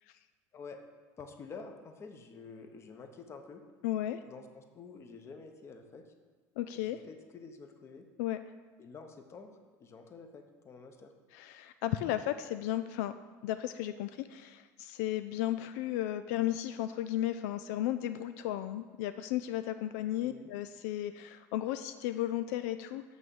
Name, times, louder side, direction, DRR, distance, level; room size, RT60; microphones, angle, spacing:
voice 1, 0.5-0.8 1.2-3.6 4.2-6.0 6.7-8.1 8.8-11.1 20.2-20.5, left 4 dB, 30° left, 6 dB, 1.0 m, -49 dB
voice 2, 3.8-4.2 6.6-7.0 8.2-8.4 11.3-13.1 13.4-23.0, left 13 dB, 85° left, 10 dB, 0.4 m, -34 dB
6.3 x 6.2 x 7.1 m, 1.4 s
supercardioid pair, 125°, 8 cm